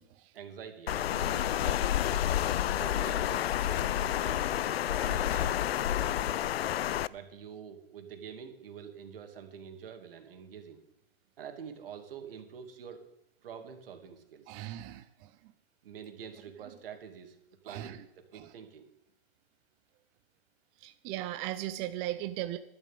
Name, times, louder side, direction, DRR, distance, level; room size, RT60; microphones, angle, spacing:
voice 1, 0.3-2.1 2.7-4.4 4.9-5.6 6.0-6.3 7.1-10.8 11.4-13.1 13.4-14.5 15.8-17.4 17.6-18.0 18.3-18.8, right 7 dB, 65° right, 6 dB, 2.6 m, -46 dB
Water, 0.9-7.1, left 11 dB, 75° left, 0.6 m, -29 dB
voice 2, 14.5-15.3 17.7-18.0 18.3-18.5 20.8-22.6, right 14 dB, 20° right, 11 dB, 0.4 m, -37 dB
12.0 x 7.4 x 9.1 m, 0.81 s
hypercardioid pair, 140°, 31 cm